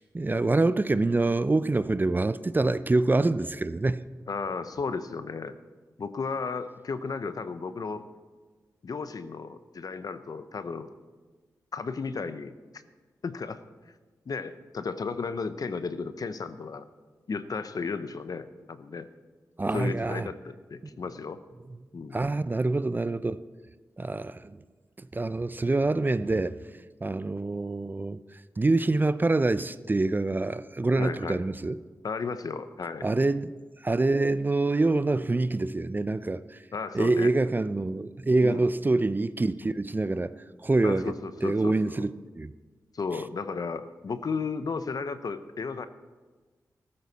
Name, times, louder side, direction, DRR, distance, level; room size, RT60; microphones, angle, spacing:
voice 1, 0.1-4.1 19.6-20.3 22.1-23.4 24.0-24.6 25.0-26.6 27.0-31.8 33.0-33.5 33.8-36.6 36.9-40.3 40.6-41.1 41.4-42.1 42.4-42.5 43.1-43.2, right 2 dB, 25° right, 0.5 m, -26 dB
voice 2, 4.3-5.6 6.0-8.1 8.8-10.9 11.7-12.6 13.2-13.6 14.3-16.9 17.3-19.1 19.7-21.4 21.9-22.2 31.0-31.4 32.0-33.1 36.7-37.3 38.4-38.7 40.8-42.1 42.9-45.9, left 4 dB, 60° left, 0.8 m, -34 dB
15.0 x 13.0 x 4.1 m
cardioid pair, 55°, 7 cm